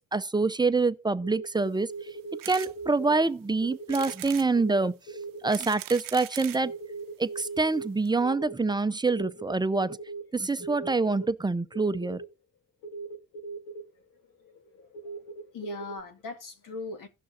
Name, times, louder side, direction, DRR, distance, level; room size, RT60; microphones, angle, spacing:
voice 1, 0.0-1.9 2.5-5.0 5.4-6.7 7.2-10.0 10.3-12.2, right 3 dB, 10° right, 0.6 m, -26 dB
sound 1, 1.2-3.2 3.6-4.1 4.5-5.5 6.6-7.9 8.2-10.2 10.5-11.3 11.7-12.3 12.8-13.8 14.4-16.0, right 3 dB, 80° left, 1.6 m, -39 dB
sound 2, 2.4-2.7 3.2-3.3 3.9-4.5 5.2-6.7 7.5-7.6 7.7-7.8 8.0-8.1, right 15 dB, 65° right, 0.7 m, -40 dB
voice 2, 14.6-15.2 15.5-17.1, left 3 dB, 60° left, 2.0 m, -40 dB
16.5 x 6.3 x 2.7 m
hypercardioid pair, 55°, 36 cm